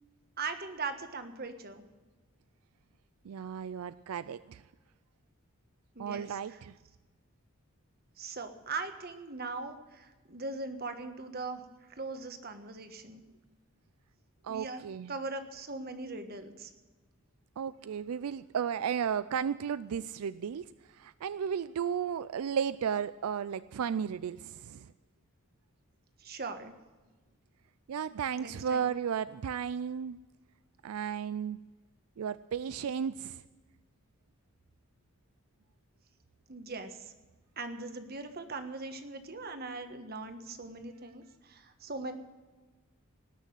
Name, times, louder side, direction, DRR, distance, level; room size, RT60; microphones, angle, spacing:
voice 1, 0.4-1.9 5.9-6.6 8.2-11.6 11.9-13.2 14.5-16.7 26.2-26.7 28.4-29.0 36.5-37.1 37.6-42.1, right 3 dB, 45° right, 8 dB, 1.4 m, -40 dB
voice 2, 3.3-4.6 6.0-6.7 14.4-15.1 17.6-20.7 21.0-24.8 27.9-30.2 30.8-31.6 32.2-33.4, right 7 dB, 85° right, 16 dB, 0.4 m, -34 dB
18.5 x 6.5 x 9.2 m, 1.2 s
head